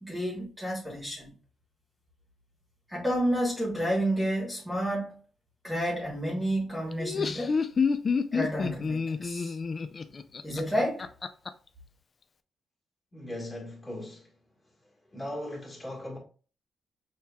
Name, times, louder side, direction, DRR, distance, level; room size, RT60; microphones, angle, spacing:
voice 1, 0.0-1.3 2.9-5.2 5.6-7.6 8.3-9.6 10.4-11.1, equal, 5° right, 1.2 m, -30 dB
Laughter, 6.9-11.5, left 5 dB, 35° left, 0.3 m, -29 dB
voice 2, 13.1-14.3 15.1-16.2, left 1 dB, 20° left, 1.5 m, -38 dB
6.4 x 2.8 x 2.3 m
wide cardioid pair, 155°, 0 cm